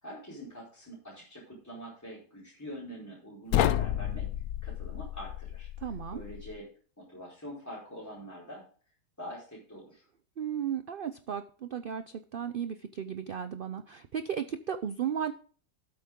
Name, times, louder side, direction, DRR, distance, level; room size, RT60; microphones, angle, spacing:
voice 1, 0.0-4.3 4.6-5.7 6.1-6.7 7.0-8.6 9.2-10.1, equal, 10° left, -6 dB, 4.4 m, -45 dB
sound 1, 3.5-6.6, left 11 dB, 70° left, 1.0 m, -31 dB
voice 2, 5.8-6.2 10.4-15.3, right 8 dB, 80° right, 10 dB, 0.4 m, -35 dB
13.0 x 7.6 x 3.6 m, 0.42 s
omnidirectional pair, 1.7 m